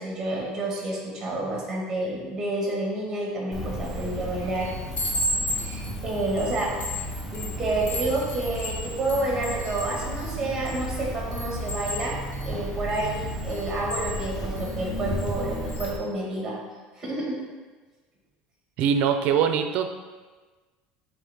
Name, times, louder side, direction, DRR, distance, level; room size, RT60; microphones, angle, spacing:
voice 1, 0.0-4.7 5.5-12.1 12.4-16.6 16.9-17.4, right 2 dB, 15° right, -3 dB, 1.5 m, -29 dB
Cricket, 3.5-16.0, equal, 5° left, 0.9 m, -34 dB
Chime, 3.8-4.2 4.6-10.9 11.3-14.7 15.2-15.4 15.7-16.0, left 1 dB, 40° left, 1.1 m, -34 dB
voice 2, 18.8-19.9, right 7 dB, 45° right, 7 dB, 0.5 m, -22 dB
8.2 x 3.5 x 3.5 m, 1.3 s
cardioid pair, 175°, 3 cm